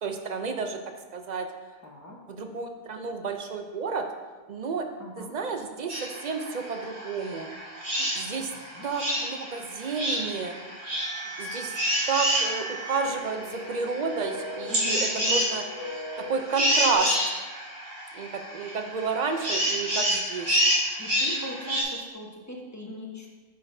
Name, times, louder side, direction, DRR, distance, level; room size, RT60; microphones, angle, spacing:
voice 1, 0.0-0.8 1.1-1.5 2.4-4.0 4.5-4.9 5.2-7.5 8.0-8.5 8.8-10.6 11.4-11.7 12.1-15.6 16.3-17.1 18.1-20.5, right 4 dB, 50° right, 5 dB, 0.5 m, -31 dB
voice 2, 1.8-2.2 5.0-5.3 8.3-8.9 14.7-15.4 21.0-23.3, left 1 dB, 15° left, -2 dB, 0.9 m, -40 dB
sound 1, 5.9-21.8, equal, 70° right, 2.2 m, -29 dB
sound 2, 11.0-17.0, equal, 90° right, 3.0 m, -39 dB
9.4 x 6.3 x 2.6 m, 1.3 s
omnidirectional pair, 1.4 m